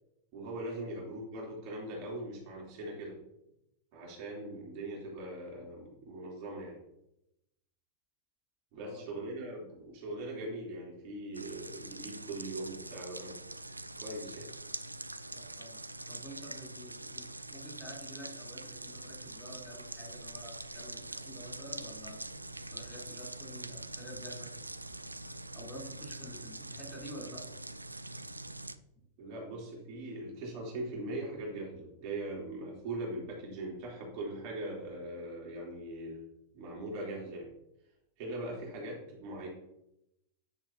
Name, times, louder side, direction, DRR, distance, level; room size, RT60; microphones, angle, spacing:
voice 1, 0.3-3.2 3.9-6.8 8.7-13.4 14.0-14.5 29.2-36.2 36.5-37.5 38.2-39.5, right 1 dB, 45° right, -3 dB, 3.4 m, -41 dB
voice 2, 8.8-9.1 15.3-22.2 22.7-24.5 25.5-27.6, equal, 10° left, -5 dB, 3.5 m, -49 dB
sound 1, 11.3-28.8, right 2 dB, 85° right, 0.4 m, -44 dB
9.9 x 7.8 x 2.8 m, 0.84 s
figure-of-eight pair, 90°, 0 cm